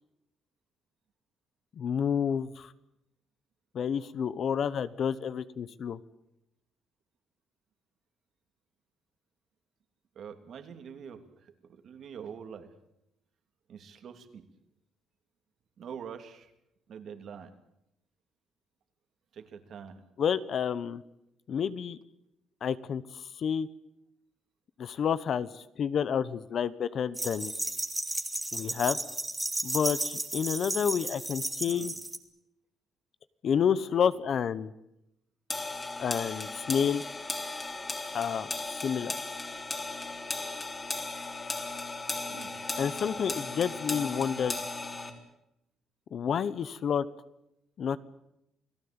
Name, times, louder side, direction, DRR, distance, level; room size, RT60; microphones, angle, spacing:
voice 1, 1.8-2.7 3.7-6.0 20.2-21.0 21.5-22.0 22.6-23.0 23.4-23.7 24.8-27.5 28.5-29.0 29.6-31.9 33.4-34.7 36.0-37.0 38.1-38.5 38.8-39.1 42.8-44.6 46.1-47.0 47.8-48.0, left 7 dB, 45° left, 16 dB, 1.0 m, -29 dB
voice 2, 10.1-12.7 13.7-14.5 15.8-16.5 16.9-17.5 19.3-20.1 31.7-31.9 42.3-42.5, right 7 dB, 50° right, 7 dB, 2.9 m, -45 dB
sound 1, 27.1-32.2, right 1 dB, 5° right, 2.0 m, -34 dB
sound 2, 35.5-45.1, left 2 dB, 15° left, 3.5 m, -36 dB
29.0 x 18.5 x 8.8 m, 0.84 s
cardioid pair, 165°, 0 cm